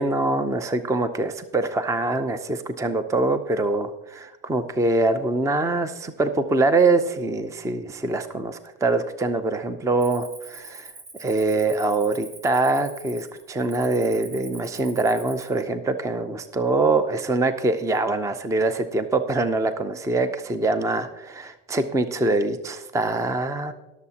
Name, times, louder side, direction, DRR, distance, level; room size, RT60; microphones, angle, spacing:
voice 1, 0.0-10.9 11.2-23.7, right 2 dB, 10° right, 10 dB, 0.5 m, -24 dB
Cricket, 10.0-15.6, right 3 dB, 85° right, 3.3 m, -44 dB
21.5 x 7.2 x 2.8 m, 1.0 s
supercardioid pair, 110°, 41 cm